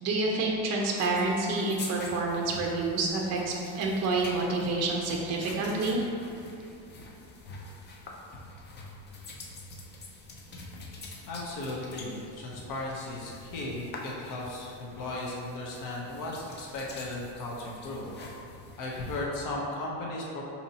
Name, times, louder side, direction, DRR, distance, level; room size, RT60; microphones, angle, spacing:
voice 1, 0.0-6.0, right 2 dB, 40° right, -1 dB, 0.6 m, -28 dB
sound 1, 0.8-19.3, left 2 dB, 25° left, 0.4 m, -46 dB
voice 2, 11.3-18.1 18.8-20.4, left 2 dB, 50° left, -3 dB, 0.8 m, -36 dB
5.1 x 2.8 x 2.8 m, 2.6 s
cardioid pair, 120°, 42 cm